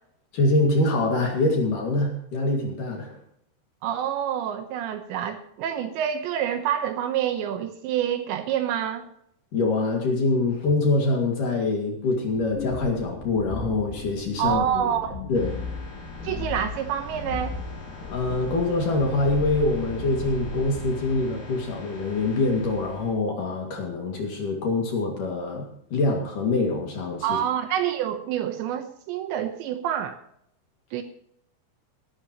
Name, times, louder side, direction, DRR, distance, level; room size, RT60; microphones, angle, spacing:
voice 1, 0.3-3.2 9.5-15.0 15.3-15.5 18.1-27.4, left 2 dB, 50° left, 1 dB, 3.1 m, -25 dB
voice 2, 3.8-9.1 14.4-15.2 16.2-17.6 27.2-30.2 30.9-31.0, right 10 dB, 75° right, 7 dB, 3.0 m, -27 dB
sound 1, 12.3-20.9, left 4 dB, 90° left, 4.5 m, -36 dB
sound 2, 15.3-23.1, left 2 dB, 35° left, 4.3 m, -41 dB
17.5 x 12.5 x 3.0 m, 0.70 s
omnidirectional pair, 5.7 m